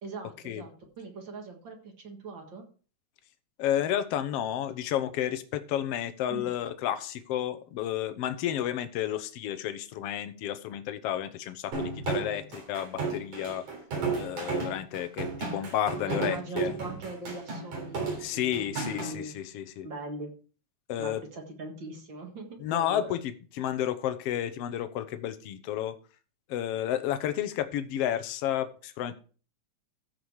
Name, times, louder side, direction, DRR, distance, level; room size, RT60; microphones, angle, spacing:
voice 1, 0.0-2.6 6.3-6.5 16.1-19.4 19.8-20.3 21.0-23.1, right 2 dB, 45° right, 3 dB, 2.0 m, -41 dB
voice 2, 3.6-13.6 14.2-16.7 18.2-19.9 20.9-21.2 22.6-26.0 26.5-29.2, left 11 dB, 70° left, 11 dB, 1.6 m, -31 dB
sound 1, 11.7-19.1, right 4 dB, 80° right, 5.2 m, -33 dB
14.5 x 5.1 x 4.8 m, 0.38 s
omnidirectional pair, 3.5 m